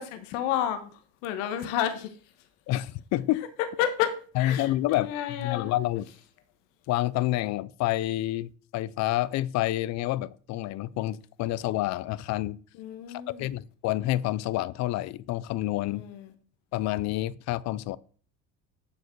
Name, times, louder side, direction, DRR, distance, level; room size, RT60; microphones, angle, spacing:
voice 1, 0.0-2.1 3.8-5.7 12.8-13.5 15.9-16.3, left 10 dB, 85° left, 1.4 m, -31 dB
voice 2, 2.7-3.5 4.4-5.1 5.4-6.1 6.9-12.6 13.1-16.0 16.7-18.0, left 15 dB, 45° left, 0.5 m, -28 dB
11.0 x 6.8 x 4.6 m
cardioid pair, 155°, 38 cm